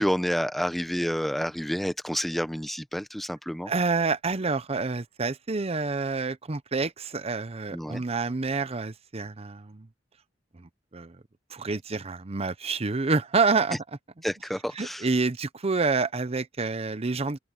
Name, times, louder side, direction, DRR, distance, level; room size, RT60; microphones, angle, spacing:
voice 1, 0.0-3.7 7.7-8.0 14.2-15.1, equal, ahead, 1.0 m, -29 dB
voice 2, 3.7-9.9 10.5-11.2 11.5-13.8 14.8-17.4, right 4 dB, 30° right, 0.7 m, -28 dB
open air
head